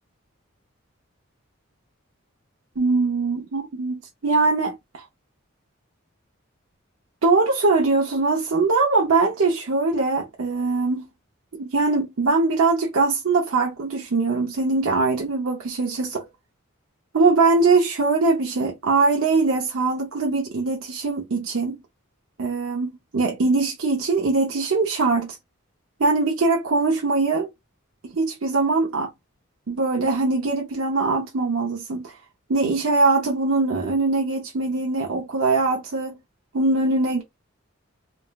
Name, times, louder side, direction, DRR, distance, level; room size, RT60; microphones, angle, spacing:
voice 1, 2.8-5.0 7.2-11.1 11.5-16.3 17.1-21.8 22.4-25.4 26.0-27.5 28.1-29.1 29.7-32.2 32.5-36.2 36.5-37.2, right 3 dB, 80° right, 0.6 m, -22 dB
3.6 x 2.0 x 2.3 m
head